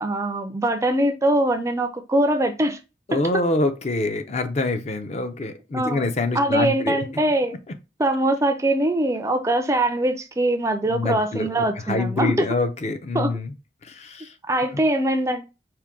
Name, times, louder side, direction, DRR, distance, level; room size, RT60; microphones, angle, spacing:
voice 1, 0.0-2.8 3.1-3.4 5.7-6.1 6.3-7.6 8.0-12.5 13.1-13.3 14.5-15.5, right 1 dB, 15° right, 0.3 m, -22 dB
voice 2, 3.1-7.0 10.9-13.5 13.8-14.3, left 2 dB, 40° left, 0.5 m, -26 dB
4.4 x 2.2 x 3.5 m
head